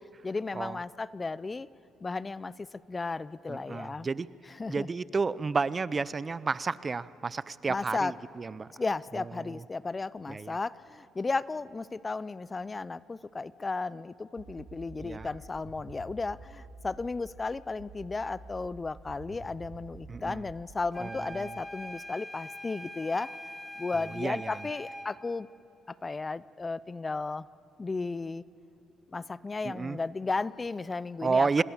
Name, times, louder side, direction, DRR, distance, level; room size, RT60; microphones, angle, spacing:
voice 1, 0.2-1.7 2.0-4.1 4.5-4.9 7.7-8.1 8.8-23.3 23.8-25.5 25.9-27.5 27.8-28.4 29.1-31.6, left 3 dB, 25° left, 19 dB, 0.5 m, -34 dB
voice 2, 3.5-4.3 4.7-8.7 9.1-9.6 10.3-10.6 15.0-15.3 20.1-20.4 21.0-21.5 24.2-24.6 29.6-30.0 31.2-31.6, right 4 dB, 35° right, 18 dB, 0.6 m, -31 dB
sound 1, 14.4-17.4 17.8-20.8, right 3 dB, 70° right, 4.4 m, -48 dB
sound 2, 20.9-25.2, equal, 5° left, 2.1 m, -43 dB
26.5 x 20.0 x 7.2 m, 2.7 s
supercardioid pair, 75°, 0 cm